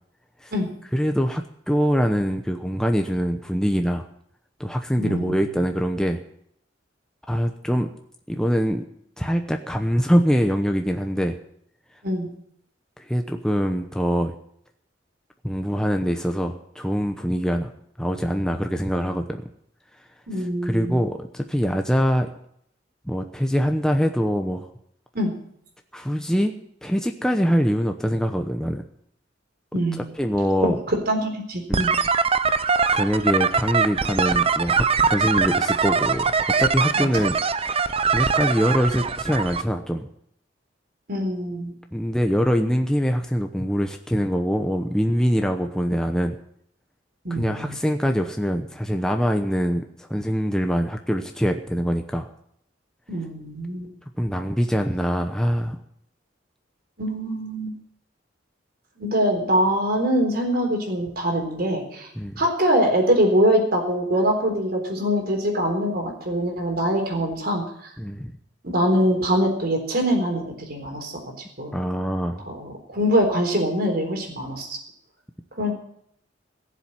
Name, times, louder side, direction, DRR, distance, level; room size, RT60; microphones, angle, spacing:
voice 1, 0.9-4.1 4.6-6.2 7.3-7.9 8.3-8.8 9.2-11.4 13.0-14.3 15.4-17.7 18.0-19.4 20.4-22.3 23.1-24.7 25.9-26.5 26.8-28.8 30.2-30.8 31.7-31.8 32.9-36.3 36.6-37.4 38.1-40.1 41.9-46.3 47.3-52.3 54.2-55.8 62.2-62.3 68.0-68.3 71.7-72.4, equal, 5° left, 4 dB, 0.9 m, -23 dB
voice 2, 5.0-5.5 12.0-12.3 20.3-21.0 25.1-25.3 29.7-30.1 30.6-31.9 37.0-37.2 41.1-41.7 47.2-47.8 53.1-53.9 57.0-57.7 59.0-62.1 62.4-67.6 68.6-71.2 71.6-71.8 72.4-74.8 75.6-75.7, equal, 55° right, 3 dB, 3.9 m, -23 dB
sound 1, 31.7-39.6, right 5 dB, 30° right, 0.6 m, -22 dB
17.0 x 7.5 x 9.8 m, 0.70 s
head